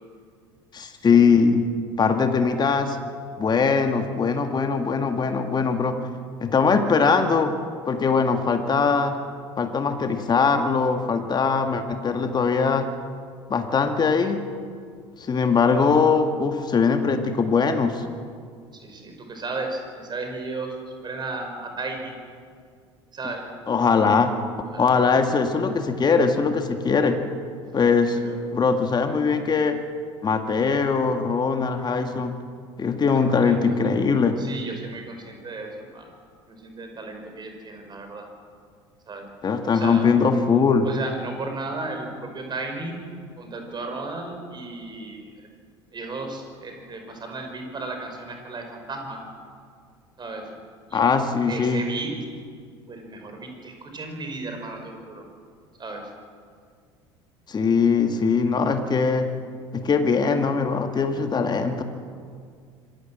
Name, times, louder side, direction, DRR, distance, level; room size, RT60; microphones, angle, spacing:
voice 1, 0.7-1.6 2.0-3.0 3.4-6.0 6.4-7.5 7.9-9.1 9.6-12.9 13.5-14.4 15.2-18.0 23.7-24.3 24.8-27.2 27.7-28.2 28.5-29.8 30.2-32.4 32.8-34.4 39.4-40.9 50.9-51.8 57.5-59.3 59.7-61.8, left 5 dB, 30° left, 6 dB, 1.9 m, -21 dB
voice 2, 18.7-20.8 21.0-22.1 23.1-23.5 24.6-24.9 28.2-28.6 33.0-33.8 34.4-36.1 36.5-38.3 39.1-39.2 39.7-40.1 40.8-43.0 43.4-45.5 45.9-49.2 50.2-50.5 50.9-51.0 51.5-52.2 52.9-55.2 55.8-56.1, right 3 dB, 30° right, 4 dB, 5.5 m, -34 dB
25.5 x 17.5 x 7.7 m, 2.1 s
figure-of-eight pair, 65°, 15 cm